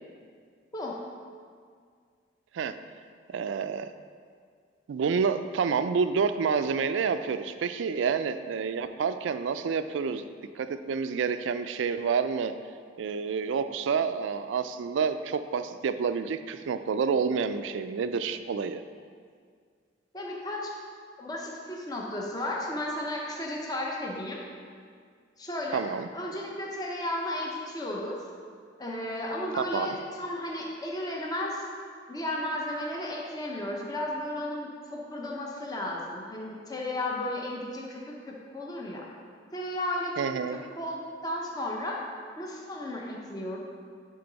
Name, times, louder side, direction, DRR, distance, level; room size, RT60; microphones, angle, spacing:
voice 1, 3.3-3.9 4.9-10.3 10.6-12.5 13.0-18.8 25.7-26.1 29.7-30.0 40.2-40.6, right 6 dB, 75° right, 10 dB, 0.3 m, -28 dB
voice 2, 20.1-20.7 21.2-24.4 25.4-25.8 26.1-28.2 28.8-31.6 32.1-39.0 39.5-43.7, left 1 dB, 20° left, -2 dB, 0.7 m, -34 dB
10.5 x 3.8 x 4.0 m, 2.1 s
head